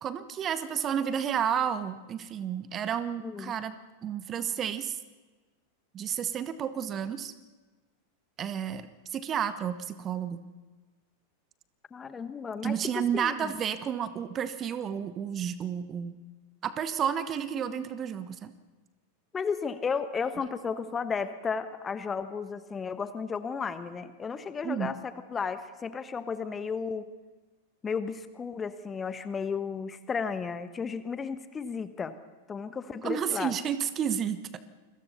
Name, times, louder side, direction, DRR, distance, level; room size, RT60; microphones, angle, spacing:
voice 1, 0.0-3.7 4.0-5.0 5.9-7.3 8.4-10.4 12.6-16.2 16.6-18.5 24.6-24.9 33.0-34.6, right 8 dB, 25° right, 12 dB, 1.1 m, -31 dB
voice 2, 3.2-3.5 11.9-13.5 19.3-27.1 27.8-32.1 32.5-33.5, left 5 dB, 20° left, 12 dB, 1.2 m, -34 dB
29.0 x 22.5 x 4.2 m, 1.3 s
figure-of-eight pair, 90°, 0 cm